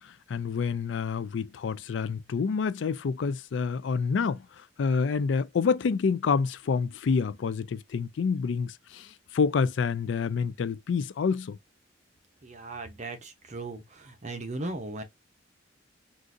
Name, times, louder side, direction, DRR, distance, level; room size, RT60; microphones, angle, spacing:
voice 1, 0.0-11.6, left 5 dB, 70° left, 0.4 m, -28 dB
voice 2, 12.4-15.0, right 2 dB, 40° right, 0.8 m, -37 dB
3.7 x 2.5 x 2.5 m
head